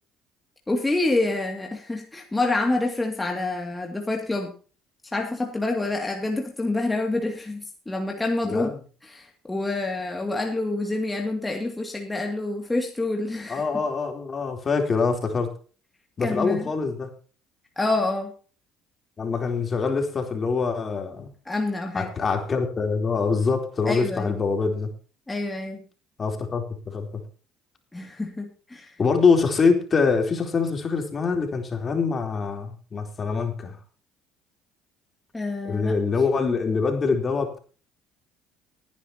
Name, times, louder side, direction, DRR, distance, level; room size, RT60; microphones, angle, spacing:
voice 1, 0.7-4.5 5.1-8.7 9.0-13.6 16.2-16.6 17.8-18.3 21.5-22.1 23.9-24.3 25.3-25.8 27.9-29.0 35.3-35.9, left 2 dB, 15° left, 2 dB, 2.5 m, -27 dB
voice 2, 8.4-8.8 13.5-15.5 16.2-17.1 19.2-21.3 21.9-24.9 26.2-27.2 29.0-33.8 35.7-37.6, left 4 dB, 35° left, 4 dB, 3.6 m, -24 dB
20.0 x 10.5 x 3.0 m, 0.37 s
hypercardioid pair, 65°, 0 cm